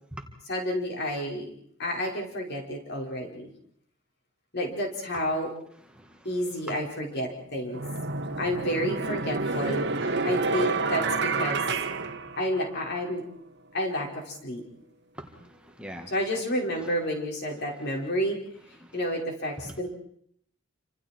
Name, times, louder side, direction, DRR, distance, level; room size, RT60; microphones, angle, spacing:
voice 1, 0.5-1.5 1.8-3.5 4.5-5.5 6.3-7.8 8.4-11.6 12.4-13.2 13.7-14.6 16.1-18.4 18.9-19.9, equal, 55° left, 0 dB, 5.3 m, -30 dB
voice 2, 5.9-6.4 6.7-6.8 15.1-16.1 16.8-16.9 18.8-19.1 19.6-19.8, right 1 dB, 5° right, 2 dB, 2.0 m, -43 dB
sound 1, 7.0-7.1 7.7-12.9, right 4 dB, 55° right, 1.6 m, -29 dB
29.0 x 26.0 x 4.6 m, 0.66 s
head